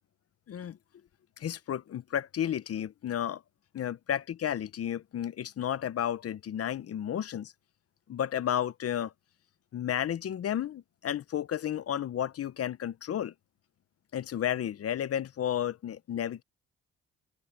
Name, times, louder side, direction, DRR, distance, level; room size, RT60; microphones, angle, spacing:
voice 1, 1.4-3.4 3.7-7.5 8.1-9.1 9.7-13.3 14.1-16.4, left 10 dB, 50° left, 0.8 m, -32 dB
cardioid pair, 90°, 30 cm